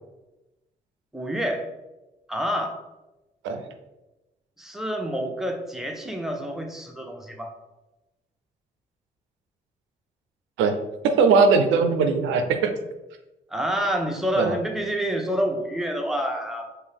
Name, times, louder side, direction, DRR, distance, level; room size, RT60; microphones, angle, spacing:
voice 1, 1.1-1.7 2.3-2.8 4.6-7.5 13.5-16.8, equal, ahead, 1 dB, 1.0 m, -28 dB
voice 2, 11.0-12.7 14.4-14.6, right 4 dB, 85° right, 6 dB, 0.4 m, -20 dB
5.2 x 2.9 x 3.3 m, 1.0 s
supercardioid pair, 45°, 19 cm